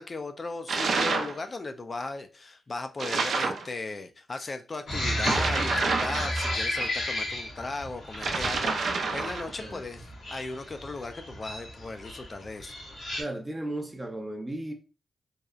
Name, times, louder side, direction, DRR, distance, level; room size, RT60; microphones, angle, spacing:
voice 1, 0.0-10.0 10.3-12.7, left 3 dB, 40° left, 0.3 m, -37 dB
sound 1, 0.7-1.4 3.0-3.7 5.2-6.9 8.1-9.5, right 4 dB, 70° right, 0.4 m, -28 dB
sound 2, 4.9-13.2, left 1 dB, 70° left, 0.9 m, -34 dB
voice 2, 13.1-14.7, right 1 dB, 15° right, 0.5 m, -35 dB
2.7 x 2.0 x 2.3 m
cardioid pair, 60°, 0 cm